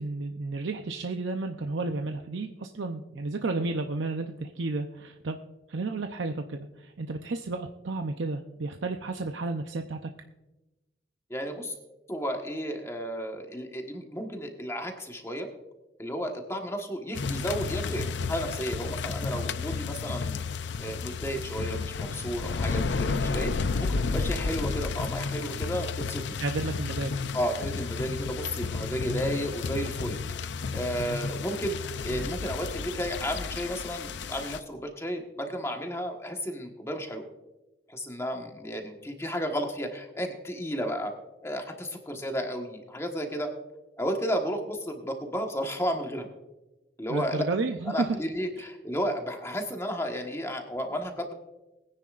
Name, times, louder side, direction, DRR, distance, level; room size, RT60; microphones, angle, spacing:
voice 1, 0.0-5.4 5.7-10.1 26.4-27.1 47.1-48.2 48.6-48.7, right 3 dB, 80° right, 5 dB, 0.7 m, -32 dB
voice 2, 11.3-11.7 12.1-15.5 16.0-20.4 20.8-26.4 27.3-30.2 30.7-37.3 37.9-41.1 41.4-43.5 44.0-46.3 47.0-47.4 47.9-51.3, equal, 15° left, 3 dB, 1.3 m, -33 dB
sound 1, 17.1-34.6, left 4 dB, 70° left, 0.5 m, -32 dB
21.0 x 9.8 x 2.5 m, 1.0 s
head